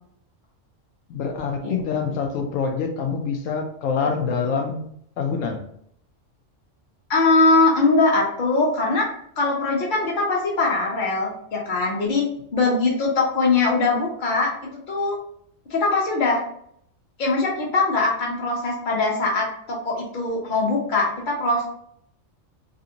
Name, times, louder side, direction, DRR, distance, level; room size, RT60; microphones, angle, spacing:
voice 1, 1.1-4.9 5.2-5.6, left 5 dB, 85° left, 3 dB, 1.0 m, -25 dB
voice 2, 7.1-9.1 9.4-12.2 12.5-14.5 14.9-15.2 15.7-16.4 17.2-21.7, left 3 dB, 40° left, -2 dB, 1.0 m, -21 dB
3.3 x 2.6 x 2.8 m, 0.68 s
omnidirectional pair, 1.3 m